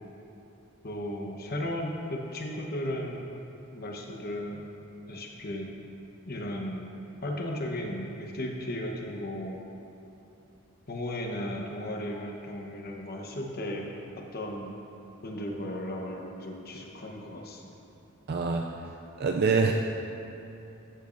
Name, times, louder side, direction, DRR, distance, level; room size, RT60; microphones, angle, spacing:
voice 1, 0.8-3.3 3.7-4.6 5.1-5.7 6.3-7.0 7.2-9.6 10.9-13.9 14.3-14.7 15.2-17.7, left 1 dB, 45° left, 1 dB, 1.0 m, -35 dB
voice 2, 18.3-18.7 19.2-19.7, right 4 dB, 50° right, 2 dB, 0.4 m, -25 dB
14.5 x 8.6 x 2.6 m, 2.9 s
head